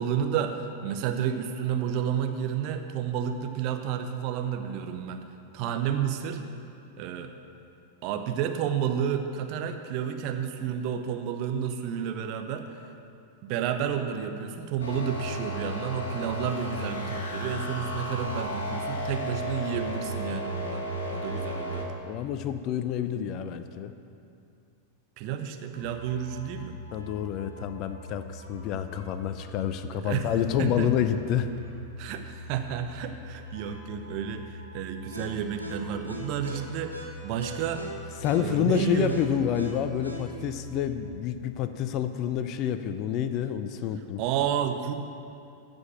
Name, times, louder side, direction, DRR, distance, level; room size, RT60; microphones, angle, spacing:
voice 1, 0.0-5.2 5.5-6.4 7.0-7.3 8.0-12.9 13.4-20.9 21.1-21.9 25.2-26.8 30.0-30.3 30.6-30.9 32.0-36.9 37.2-38.1 38.4-39.2 44.2-44.9, right 8 dB, 45° right, 6 dB, 0.9 m, -31 dB
sound 1, 14.8-21.8, equal, 60° left, 2.2 m, -33 dB
voice 2, 22.0-23.9 26.9-31.5 38.2-44.2, left 9 dB, 40° left, 10 dB, 0.6 m, -28 dB
sound 2, 25.7-41.1, left 1 dB, 90° left, 1.8 m, -42 dB
14.0 x 5.3 x 7.5 m, 2.6 s
figure-of-eight pair, 90°, 0 cm